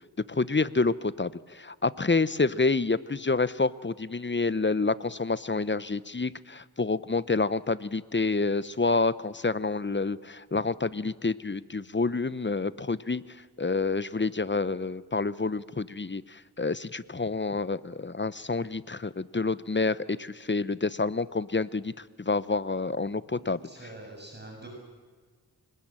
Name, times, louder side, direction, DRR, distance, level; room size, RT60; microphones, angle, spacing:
voice 1, 0.2-13.2 13.6-23.6, left 3 dB, 30° left, 17 dB, 0.8 m, -28 dB
voice 2, 23.3-24.7, right 2 dB, 25° right, 0 dB, 7.2 m, -45 dB
25.5 x 20.0 x 8.9 m, 1.5 s
cardioid pair, 45°, 40 cm